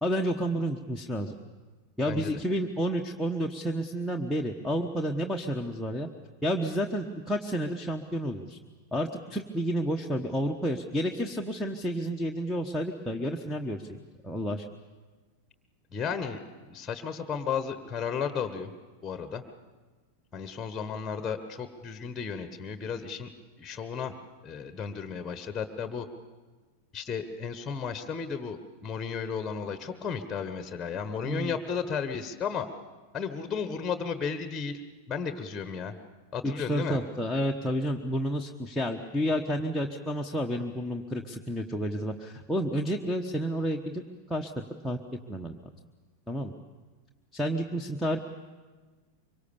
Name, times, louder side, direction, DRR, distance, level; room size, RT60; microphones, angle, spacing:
voice 1, 0.0-1.4 2.0-6.1 6.4-8.6 8.9-14.0 14.2-14.6 31.2-31.5 36.4-44.0 44.3-45.0 45.3-45.6 46.3-46.5 47.3-48.2, equal, ahead, 5 dB, 1.2 m, -30 dB
voice 2, 2.1-2.4 15.9-18.7 19.0-19.4 20.3-23.3 23.6-24.1 24.4-26.1 26.9-32.7 33.1-34.8 35.1-35.9 36.3-37.0, left 6 dB, 15° left, 9 dB, 1.4 m, -34 dB
25.0 x 23.5 x 7.1 m, 1.3 s
figure-of-eight pair, 90°, 0 cm